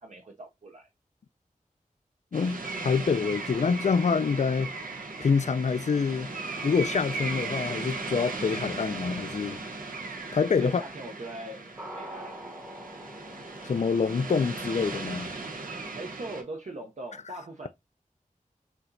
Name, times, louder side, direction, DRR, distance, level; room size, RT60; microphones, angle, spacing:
voice 1, 0.0-0.9 10.6-11.7 12.0-12.3 15.9-17.7, right 2 dB, 55° right, 0.6 m, -40 dB
voice 2, 2.3-4.7 5.2-6.3 6.6-9.6 10.3-10.8 13.6-15.4, left 5 dB, 55° left, 0.4 m, -26 dB
sound 1, 2.3-16.4, right 3 dB, 90° right, 0.9 m, -37 dB
sound 2, 11.8-15.4, equal, 20° right, 0.9 m, -46 dB
6.0 x 2.9 x 2.6 m
wide cardioid pair, 75°, 14 cm